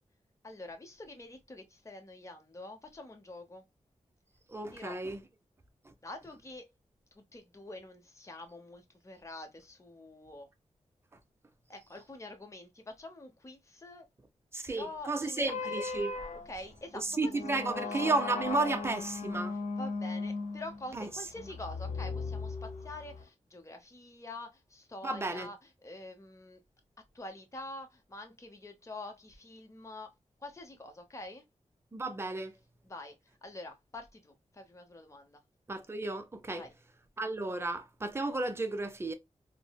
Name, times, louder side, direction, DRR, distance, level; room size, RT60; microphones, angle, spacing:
voice 1, 0.4-3.6 4.7-5.0 6.0-6.7 7.1-10.5 11.7-14.1 14.7-15.9 16.3-18.1 19.7-26.6 27.1-30.1 30.4-31.4 32.8-35.4 36.6-36.7, left 2 dB, 25° left, 0.8 m, -46 dB
voice 2, 4.5-5.2 14.5-16.1 16.9-19.6 20.9-21.1 25.0-25.5 31.9-32.5 35.7-36.6 37.2-39.1, right 3 dB, 20° right, 0.6 m, -33 dB
sound 1, 15.4-23.2, left 4 dB, 90° left, 0.7 m, -37 dB
3.7 x 2.1 x 2.2 m
wide cardioid pair, 75°, 12 cm